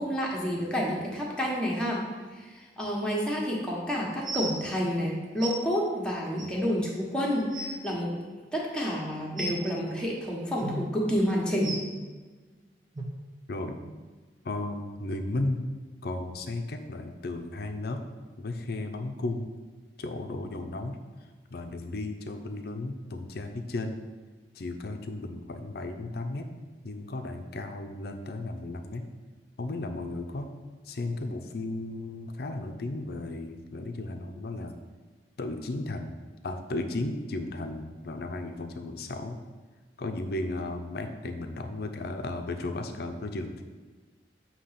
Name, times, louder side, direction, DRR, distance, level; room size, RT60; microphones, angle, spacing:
voice 1, 0.0-2.0 2.3-8.1 8.5-11.8, equal, 5° left, -4 dB, 1.1 m, -29 dB
sound 1, 4.2-4.5 5.4-5.5 6.4-6.5 7.1-7.2 7.4-7.7 9.4-9.6 10.6-10.8 11.6-11.8 12.9-13.0 13.8-13.9 14.6-14.7, right 2 dB, 25° right, 0.8 m, -34 dB
voice 2, 14.4-15.7 16.0-18.0 18.4-19.5 20.0-21.0 21.5-24.0 24.5-26.5 26.8-29.1 29.6-30.5 30.8-34.7 35.4-36.2 36.4-39.4 40.0-43.6, left 2 dB, 60° left, 6 dB, 0.6 m, -34 dB
6.9 x 2.9 x 5.7 m, 1.4 s
head